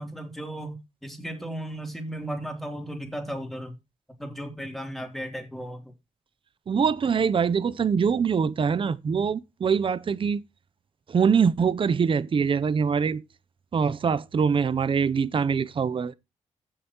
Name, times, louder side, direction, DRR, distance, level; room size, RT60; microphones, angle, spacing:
voice 1, 0.0-3.7 4.2-5.9, right 1 dB, ahead, 3.2 m, -35 dB
voice 2, 6.7-10.4 11.1-13.2 13.7-16.1, right 6 dB, 45° right, 0.7 m, -23 dB
15.5 x 6.5 x 3.0 m
cardioid pair, 90°, 13 cm